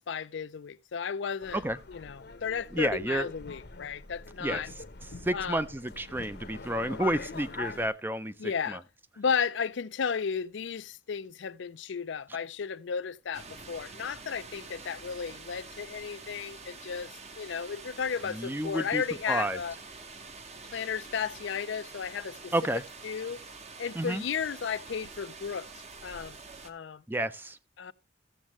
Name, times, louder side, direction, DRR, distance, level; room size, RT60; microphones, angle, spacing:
voice 1, 0.0-1.6 1.9-4.7 5.3-5.6 8.4-8.8 9.2-19.7 20.7-22.5 23.0-23.4 23.8-25.7 26.0-26.4 26.6-27.0 27.8-27.9, left 6 dB, 75° left, 0.5 m, -34 dB
Subway metro underground, 1.4-7.9, left 4 dB, 55° left, 0.9 m, -44 dB
voice 2, 2.7-3.3 4.4-4.6 5.2-8.8 18.3-19.6 22.5-22.8 23.9-24.2 27.1-27.6, right 1 dB, 10° right, 0.5 m, -31 dB
sound 1, 13.3-26.7, right 4 dB, 35° right, 0.9 m, -47 dB
15.0 x 7.4 x 3.0 m
head